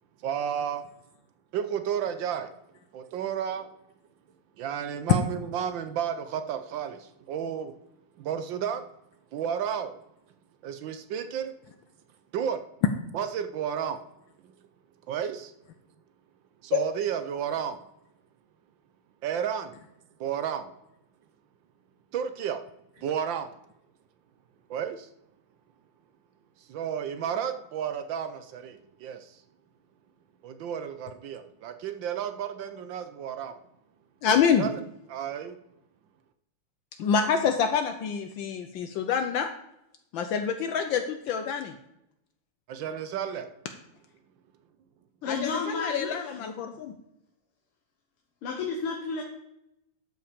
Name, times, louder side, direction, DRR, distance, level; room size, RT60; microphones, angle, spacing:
voice 1, 0.2-0.8 1.5-2.5 2.9-3.7 4.6-7.8 8.2-8.9 9.3-10.0 10.6-11.5 12.3-12.6 13.1-14.0 14.4-14.5 15.1-15.5 16.6-17.8 19.2-19.8 20.2-20.7 22.1-22.6 23.0-23.5 24.7-25.1 26.6-29.4 30.4-33.5 34.6-34.8 35.1-35.6 42.7-43.5, right 8 dB, 70° right, 9 dB, 1.3 m, -32 dB
voice 2, 34.2-34.7 37.0-39.5 40.1-41.7 45.2-47.0, left 7 dB, 70° left, 7 dB, 1.3 m, -26 dB
voice 3, 45.2-46.4 48.4-49.2, left 4 dB, 85° left, 2 dB, 2.1 m, -32 dB
12.5 x 5.6 x 5.0 m, 0.82 s
omnidirectional pair, 2.4 m